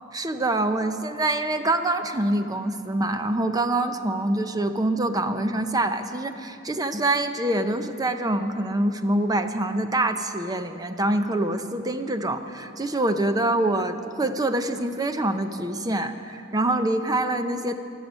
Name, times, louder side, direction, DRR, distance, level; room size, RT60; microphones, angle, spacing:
voice 1, 0.1-17.7, right 1 dB, 20° right, 8 dB, 0.6 m, -25 dB
14.5 x 12.0 x 6.3 m, 2.6 s
head